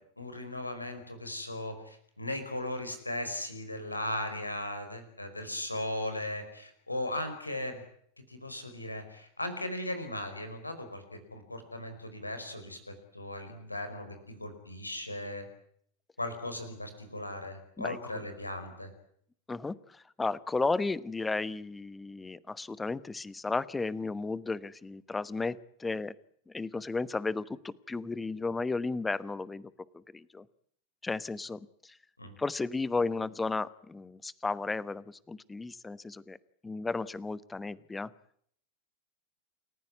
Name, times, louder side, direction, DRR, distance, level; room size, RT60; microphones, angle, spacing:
voice 1, 0.2-7.8 8.3-11.0 11.3-15.4 16.2-18.9 32.2-32.3, left 1 dB, 85° left, 8 dB, 5.0 m, -37 dB
voice 2, 17.8-18.2 19.5-26.1 26.5-30.4 31.0-32.0 32.4-36.4 36.6-38.1, left 3 dB, 10° left, 20 dB, 1.1 m, -34 dB
29.0 x 15.0 x 9.7 m, 0.66 s
figure-of-eight pair, 90°, 0 cm